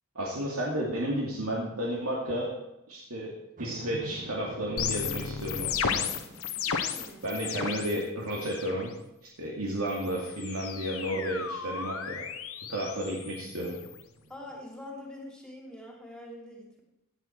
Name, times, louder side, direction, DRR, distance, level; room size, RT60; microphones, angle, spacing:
voice 1, 0.1-2.5 2.9-3.3 3.6-6.1 7.2-8.9 9.4-12.2 12.7-13.7, right 1 dB, 80° right, -3 dB, 2.5 m, -32 dB
sound 1, 3.6-9.1 9.6-9.7 13.6-14.7, right 1 dB, 40° right, 1.4 m, -48 dB
sound 2, 4.8-8.0 8.3-8.9 9.9-14.0, left 7 dB, 75° left, 1.1 m, -34 dB
voice 2, 6.7-7.6 14.3-16.8, left 1 dB, 5° left, -1 dB, 2.8 m, -45 dB
16.0 x 8.3 x 4.6 m, 0.88 s
head